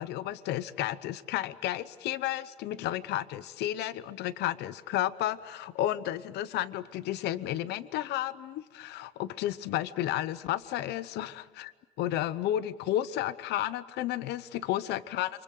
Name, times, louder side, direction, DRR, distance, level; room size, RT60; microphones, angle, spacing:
voice 1, 0.0-11.7 12.0-15.3, left 13 dB, 80° left, 16 dB, 0.8 m, -32 dB
28.0 x 24.5 x 7.7 m, 1.2 s
cardioid pair, 110°, 17 cm